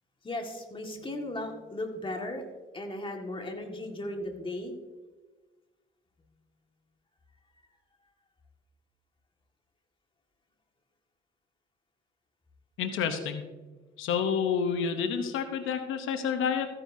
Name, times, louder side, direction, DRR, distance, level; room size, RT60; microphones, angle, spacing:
voice 1, 0.2-2.5 2.7-4.7, left 1 dB, 25° left, 3 dB, 1.8 m, -36 dB
voice 2, 12.8-13.4 14.0-16.7, left 7 dB, 90° left, 7 dB, 0.9 m, -29 dB
14.5 x 9.9 x 2.7 m, 1.3 s
cardioid pair, 90°, 20 cm